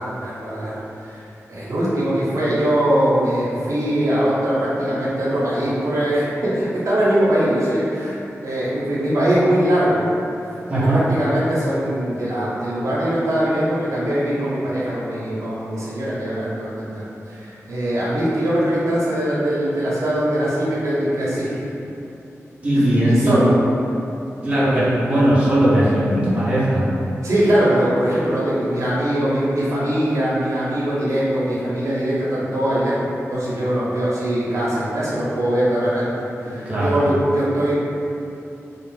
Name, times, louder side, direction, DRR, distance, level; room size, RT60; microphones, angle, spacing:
voice 1, 0.0-10.0 10.8-21.6 22.7-23.5 24.4-25.0 27.2-37.7, right 1 dB, 75° right, -8 dB, 0.6 m, -21 dB
voice 2, 22.6-23.3 24.4-26.9 36.5-37.0, right 1 dB, 25° right, -10 dB, 0.6 m, -18 dB
2.4 x 2.0 x 3.1 m, 2.8 s
wide cardioid pair, 135°, 5 cm